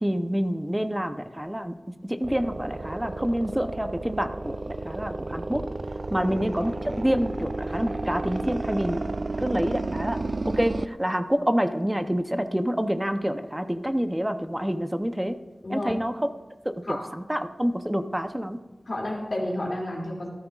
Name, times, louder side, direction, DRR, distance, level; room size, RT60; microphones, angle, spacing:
voice 1, 0.0-5.6 6.1-9.0 9.4-15.4 15.7-16.1 16.6-17.0 17.3-18.6, equal, 10° right, 9 dB, 0.6 m, -27 dB
sound 1, 2.2-10.9, right 2 dB, 45° right, 0.3 m, -32 dB
voice 2, 15.6-16.0 16.8-17.0 18.9-20.3, left 1 dB, 55° left, -2 dB, 2.5 m, -31 dB
13.5 x 12.5 x 2.4 m, 1.2 s
wide cardioid pair, 85°, 0 cm